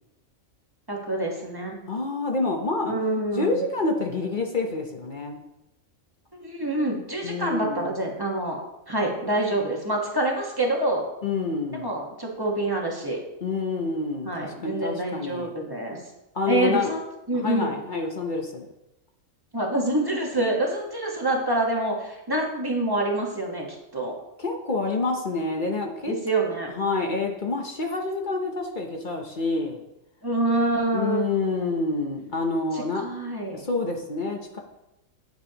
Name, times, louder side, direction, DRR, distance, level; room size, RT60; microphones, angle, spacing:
voice 1, 0.9-1.8 2.8-3.6 6.3-8.6 8.9-11.0 11.8-13.2 14.2-16.0 16.5-17.0 17.3-17.7 19.5-23.7 23.9-24.1 26.1-26.7 30.2-31.2 32.7-33.6, right 2 dB, 15° right, -1 dB, 1.3 m, -26 dB
voice 2, 1.9-2.9 3.3-5.4 7.2-7.9 11.2-11.9 13.4-15.5 16.3-16.9 17.3-18.7 24.4-26.2 26.7-29.8 30.9-33.0 33.5-34.6, left 3 dB, 40° left, 2 dB, 0.9 m, -27 dB
8.9 x 8.5 x 2.9 m, 0.91 s
omnidirectional pair, 1.4 m